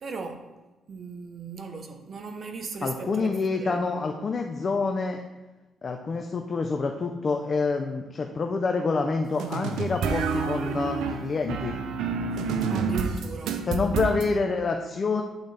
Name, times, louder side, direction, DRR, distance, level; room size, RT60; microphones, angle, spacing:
voice 1, 0.0-0.5 0.9-3.9 10.9-11.0 12.7-14.1, right 4 dB, 50° right, 5 dB, 0.8 m, -38 dB
voice 2, 2.8-5.2 5.8-11.8 13.7-15.2, left 4 dB, 40° left, 4 dB, 0.5 m, -27 dB
sound 1, 9.4-14.3, right 5 dB, 80° right, 0.5 m, -28 dB
10.5 x 4.0 x 3.3 m, 1.1 s
cardioid pair, 90°, 0 cm